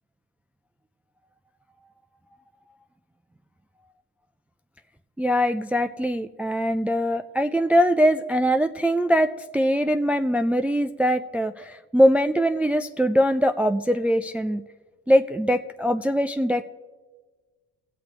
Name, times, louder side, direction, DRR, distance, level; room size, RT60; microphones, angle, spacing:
voice 1, 5.2-14.6 15.1-16.6, equal, 5° right, 8 dB, 0.3 m, -22 dB
22.0 x 8.1 x 3.0 m, 1.3 s
cardioid pair, 90°, 30 cm